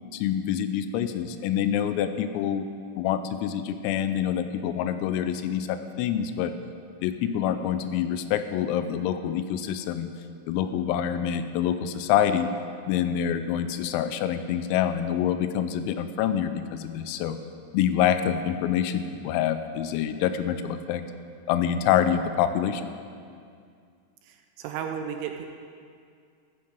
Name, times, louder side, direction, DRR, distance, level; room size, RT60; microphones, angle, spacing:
voice 1, 0.1-2.7 3.0-6.5 7.0-10.1 10.5-12.5 12.9-17.4 17.7-21.0 21.5-22.9, left 9 dB, 90° left, 10 dB, 3.3 m, -26 dB
voice 2, 24.2-25.5, right 8 dB, 85° right, 5 dB, 2.9 m, -34 dB
14.0 x 13.5 x 5.2 m, 2.3 s
omnidirectional pair, 6.0 m